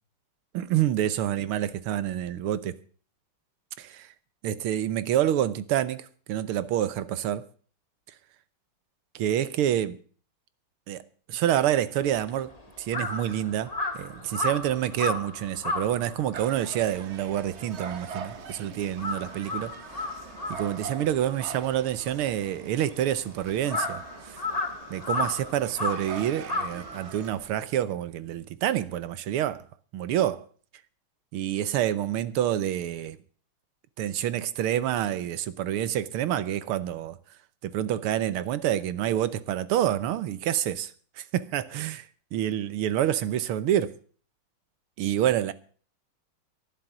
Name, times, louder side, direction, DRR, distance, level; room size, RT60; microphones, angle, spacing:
voice 1, 0.5-2.8 3.8-4.0 4.4-7.5 9.2-10.0 10.9-11.0 11.3-12.5 12.8-19.7 20.5-24.4 24.9-29.6 29.9-30.5 31.3-33.2 34.0-37.2 37.6-40.9 41.2-42.0 42.3-43.9 45.0-45.5, right 11 dB, 90° right, 1.8 m, -27 dB
Crow, 12.0-18.5 18.8-27.4, left 2 dB, 20° left, 1.7 m, -34 dB
sound 1, 16.3-27.3, right 6 dB, 50° right, 0.8 m, -43 dB
11.5 x 11.5 x 7.3 m
omnidirectional pair, 2.3 m